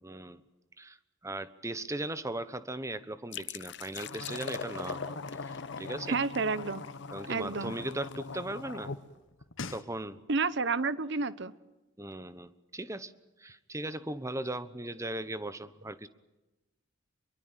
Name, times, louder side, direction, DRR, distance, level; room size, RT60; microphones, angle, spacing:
voice 1, 0.0-0.4 0.8-1.0 1.2-5.2 5.8-6.2 7.1-8.9 9.7-10.2 12.0-13.1 13.4-16.1, right 1 dB, 15° right, 13 dB, 1.1 m, -38 dB
sound 1, 3.3-8.9, left 6 dB, 60° left, 0.8 m, -43 dB
sound 2, 3.9-9.0 9.3-9.8, left 3 dB, 90° left, 1.6 m, -42 dB
voice 2, 6.1-6.8 7.3-7.7 10.3-11.5, right 4 dB, 60° right, 16 dB, 1.1 m, -30 dB
25.0 x 23.0 x 9.0 m, 1.1 s
head